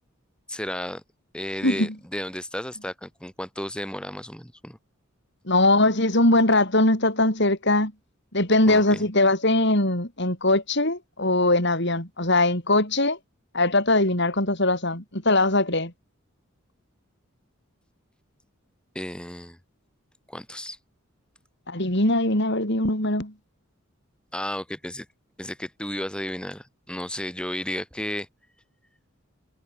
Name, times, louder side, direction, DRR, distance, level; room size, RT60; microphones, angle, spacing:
voice 1, 0.5-1.0 1.3-4.8 8.7-9.0 18.9-19.6 20.3-20.8 24.3-25.1 25.4-28.3, left 1 dB, 5° left, 4.9 m, -33 dB
voice 2, 5.5-7.9 8.3-13.2 13.5-15.9 21.7-23.3, left 2 dB, 55° left, 7.8 m, -21 dB
head